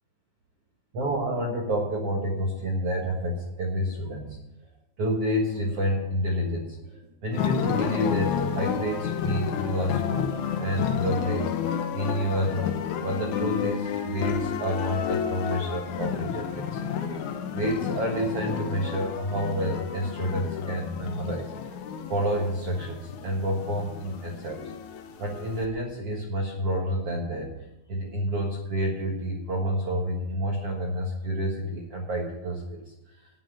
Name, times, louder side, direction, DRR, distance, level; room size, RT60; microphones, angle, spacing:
voice 1, 0.9-4.4 5.0-21.5 22.1-24.7 25.2-27.6 27.9-33.3, equal, 55° right, -1 dB, 1.6 m, -29 dB
sound 1, 7.3-25.7, left 7 dB, 75° left, 1.7 m, -31 dB
9.7 x 8.8 x 9.0 m, 0.90 s
omnidirectional pair, 4.8 m